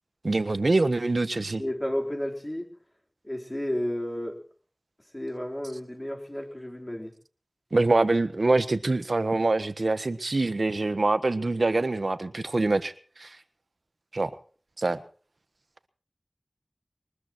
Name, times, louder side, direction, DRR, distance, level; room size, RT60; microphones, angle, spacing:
voice 1, 0.2-1.6 7.7-12.9 13.2-13.3 14.1-14.3 14.8-15.0, right 2 dB, 70° right, 11 dB, 1.3 m, -24 dB
voice 2, 1.6-2.7 3.2-4.4 5.1-7.1, left 1 dB, 20° left, 1 dB, 4.1 m, -32 dB
22.5 x 20.5 x 3.1 m, 0.42 s
wide cardioid pair, 45°, 0 cm